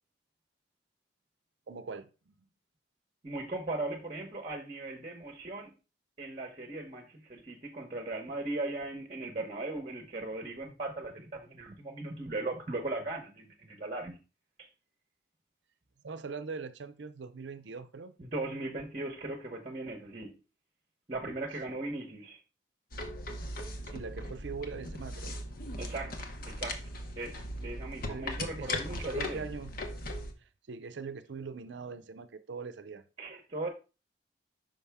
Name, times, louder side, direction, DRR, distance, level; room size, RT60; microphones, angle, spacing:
voice 1, 1.7-2.3 16.0-18.2 21.7-21.8 23.8-25.3 26.0-26.1 28.0-28.3 28.6-28.8 29.1-29.7 30.4-33.0, right 5 dB, 75° right, 0.5 m, -42 dB
voice 2, 3.2-5.7 6.2-14.2 14.6-14.7 18.2-20.4 21.1-22.4 25.8-26.8 27.2-29.5 33.2-33.7, right 2 dB, 35° right, 0.9 m, -38 dB
sound 1, 22.9-30.3, left 1 dB, 55° left, 0.9 m, -38 dB
5.5 x 5.3 x 3.4 m
head